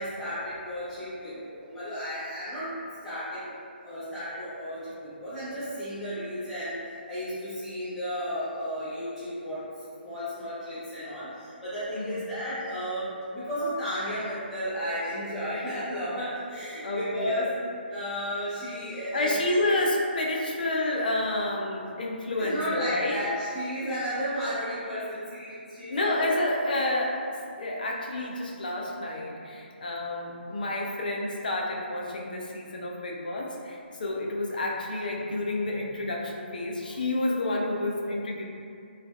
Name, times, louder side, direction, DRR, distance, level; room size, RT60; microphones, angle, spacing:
voice 1, 0.0-2.8 3.0-3.5 3.8-6.7 7.1-9.6 10.0-17.5 17.9-19.8 22.4-26.1 35.6-35.7 36.8-36.9, equal, ahead, -17 dB, 0.6 m, -33 dB
voice 2, 16.8-17.5 19.1-23.2 25.9-27.2 27.6-38.4, left 1 dB, 50° left, -2 dB, 0.4 m, -29 dB
2.5 x 2.2 x 2.2 m, 2.5 s
figure-of-eight pair, 140°, 6 cm